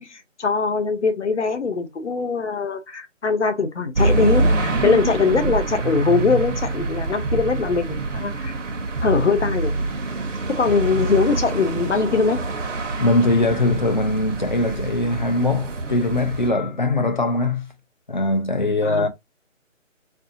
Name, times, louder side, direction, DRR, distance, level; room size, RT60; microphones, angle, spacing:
voice 1, 0.0-8.5 9.0-9.8 10.6-12.4 18.8-19.1, left 4 dB, 60° left, 0.8 m, -22 dB
sound 1, 3.9-16.5, right 2 dB, 65° right, 0.9 m, -25 dB
voice 2, 13.0-17.7 18.1-19.1, left 2 dB, 40° left, 0.5 m, -21 dB
3.6 x 2.7 x 2.5 m
figure-of-eight pair, 165°, 39 cm